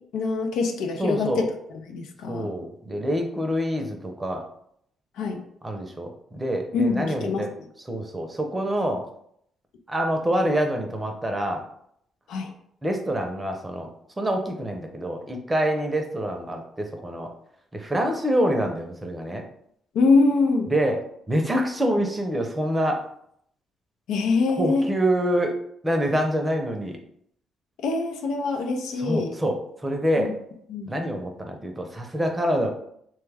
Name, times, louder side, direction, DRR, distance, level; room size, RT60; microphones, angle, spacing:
voice 1, 0.1-1.5 1.9-2.5 5.2-5.4 6.7-7.5 12.3-12.5 19.9-20.7 24.1-24.8 27.8-29.3 30.2-30.3 30.7-30.9, left 3 dB, 85° left, 4 dB, 0.5 m, -24 dB
voice 2, 1.0-1.5 2.3-4.4 5.6-7.5 7.9-9.1 9.9-11.6 12.8-13.9 14.2-17.3 17.7-19.4 20.7-21.0 21.3-23.1 24.6-25.5 25.8-27.0 29.0-30.4 30.8-32.7, equal, 15° right, 3 dB, 0.6 m, -26 dB
3.1 x 2.3 x 3.3 m, 0.70 s
cardioid pair, 90°, 0 cm